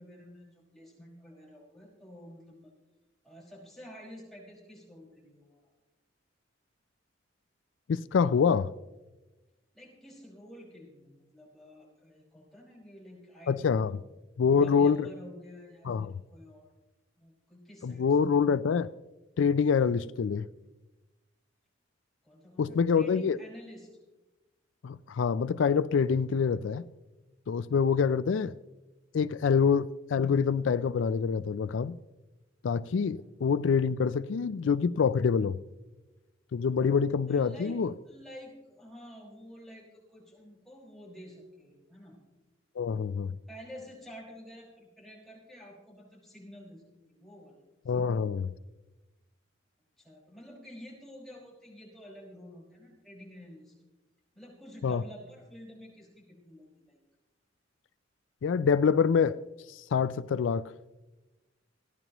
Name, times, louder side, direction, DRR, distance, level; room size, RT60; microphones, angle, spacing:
voice 1, 0.0-2.7 3.2-5.7 9.7-13.9 14.5-16.7 17.2-18.4 22.2-23.9 37.3-42.2 43.5-47.6 47.9-48.1 50.0-53.7 54.3-57.0, equal, ahead, 5.4 m, -50 dB
voice 2, 7.9-8.7 13.5-13.9 14.4-15.1 15.9-16.1 17.8-18.9 19.4-20.5 22.6-23.4 24.8-26.8 27.5-28.5 29.1-32.0 32.6-35.6 36.5-37.9 42.8-43.3 47.9-48.5 54.8-55.0 58.4-59.4 59.7-60.6, left 6 dB, 75° left, 0.4 m, -26 dB
29.0 x 11.0 x 3.0 m
head